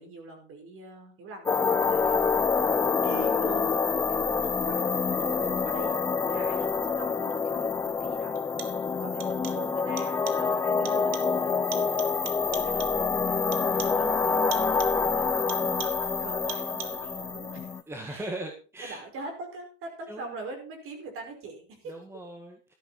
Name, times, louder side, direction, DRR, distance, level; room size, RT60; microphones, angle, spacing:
voice 1, 0.0-2.5 2.8-4.8 5.2-6.0 6.3-8.6 9.0-12.0 12.4-17.8 18.1-18.3 18.8-21.9, right 3 dB, 35° right, 4 dB, 5.4 m, -43 dB
sound 1, 1.5-17.8, left 5 dB, 10° left, 0.6 m, -27 dB
voice 2, 1.9-2.2 6.3-6.7 10.3-10.6 11.7-11.9 17.9-19.0 20.1-20.5 21.8-22.7, right 1 dB, 5° right, 4 dB, 1.8 m, -41 dB
sound 2, 7.3-7.4 8.3-8.9 9.2-9.7 10.0-10.5 10.8-11.4 11.7-13.1 13.5-14.1 14.5-15.1 15.5-16.1 16.5-17.1, right 9 dB, 80° right, 2.0 m, -42 dB
13.0 x 11.5 x 4.2 m, 0.35 s
supercardioid pair, 130°, 36 cm